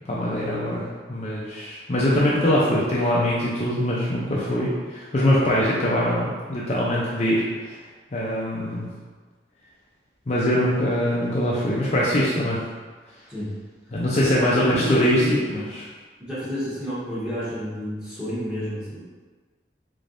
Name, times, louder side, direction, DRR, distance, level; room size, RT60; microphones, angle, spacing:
voice 1, 0.1-7.6 8.1-8.9 10.3-12.6 13.9-15.2 15.5-15.6, equal, 40° left, -6 dB, 0.5 m, -22 dB
voice 2, 14.5-15.4 16.2-19.0, equal, 5° right, -11 dB, 1.2 m, -30 dB
3.7 x 3.3 x 2.6 m, 1.4 s
head